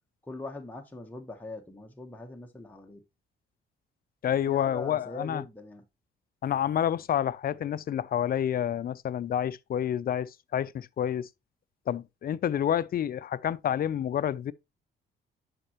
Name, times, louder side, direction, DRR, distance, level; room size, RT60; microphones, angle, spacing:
voice 1, 0.3-3.0 4.3-5.8, left 2 dB, 10° left, 1.0 m, -41 dB
voice 2, 4.2-5.4 6.4-11.3 11.9-14.5, left 10 dB, 50° left, 0.5 m, -29 dB
11.0 x 4.3 x 2.9 m
cardioid pair, 90°, 20 cm